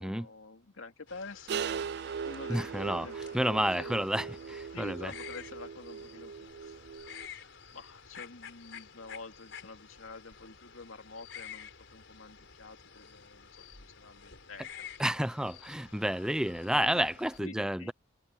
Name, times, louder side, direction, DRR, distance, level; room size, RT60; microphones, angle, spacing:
voice 1, 0.0-1.8 2.2-4.0 4.7-6.8 7.7-13.5 13.8-14.9 16.7-17.1 17.4-17.9, left 3 dB, 85° left, 2.4 m, -48 dB
sound 1, 1.1-17.4, left 7 dB, 65° left, 4.5 m, -51 dB
sound 2, 1.5-7.3, right 6 dB, 55° right, 0.3 m, -39 dB
voice 2, 2.5-3.1 3.3-5.1 15.0-17.9, right 1 dB, 5° right, 0.6 m, -30 dB
head